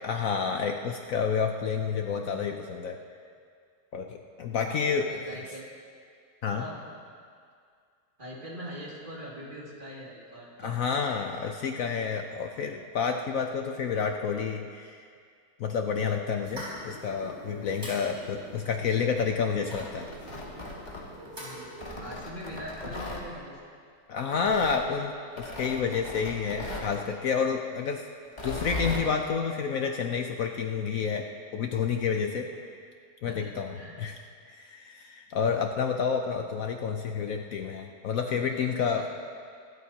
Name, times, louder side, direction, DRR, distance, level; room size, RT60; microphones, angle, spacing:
voice 1, 0.0-3.0 3.9-5.1 6.4-6.6 10.6-15.0 15.6-20.1 24.1-28.0 28.4-31.3 31.5-32.5 33.2-33.7 34.0-34.1 34.5-39.1, left 6 dB, 65° left, 3 dB, 1.0 m, -29 dB
voice 2, 4.7-5.7 6.5-7.0 8.2-10.8 21.4-23.6 24.3-24.9 33.3-34.1 38.4-39.1, equal, 30° right, -5 dB, 2.6 m, -43 dB
sound 1, 16.4-22.1, equal, 65° right, 4.8 m, -44 dB
Tearing, 19.5-21.3 21.8-23.2 24.3-24.8 25.4-26.9 28.3-29.1, left 1 dB, 25° left, 1.9 m, -37 dB
24.5 x 13.5 x 2.9 m, 2.2 s
omnidirectional pair, 1.7 m